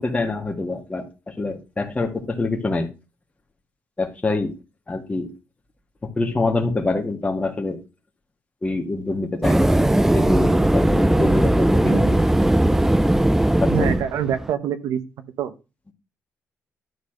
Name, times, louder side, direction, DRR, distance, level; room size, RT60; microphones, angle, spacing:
voice 1, 0.0-2.9 4.0-4.5 4.9-5.3 6.0-7.8 8.6-9.7 10.1-12.1 13.6-13.9, left 3 dB, 25° left, 3 dB, 1.8 m, -25 dB
sound 1, 9.4-14.5, right 1 dB, 5° right, 0.5 m, -18 dB
voice 2, 11.8-12.2 13.7-15.0 15.4-15.5, right 9 dB, 90° right, 10 dB, 0.9 m, -25 dB
11.0 x 4.2 x 6.5 m, 0.30 s
cardioid pair, 90°, 6 cm